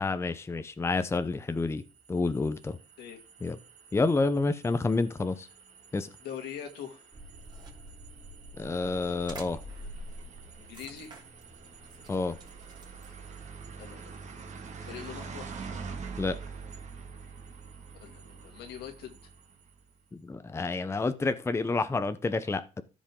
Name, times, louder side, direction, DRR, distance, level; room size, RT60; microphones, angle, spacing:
voice 1, 0.0-1.8 2.1-2.8 3.4-3.6 3.9-5.5 5.9-6.1 8.6-9.6 12.1-12.4 16.2-16.4 20.1-22.8, left 3 dB, 15° left, 12 dB, 0.7 m, -29 dB
sound 1, 1.4-19.9, right 5 dB, 45° right, 1.9 m, -46 dB
voice 2, 6.2-7.0 10.6-11.1 13.8-14.5 14.8-15.5 18.0-19.2, left 8 dB, 80° left, 5 dB, 2.2 m, -43 dB
sound 2, 7.1-13.4, equal, 25° right, 3.2 m, -47 dB
14.0 x 5.2 x 3.7 m, 0.32 s
cardioid pair, 110°, 17 cm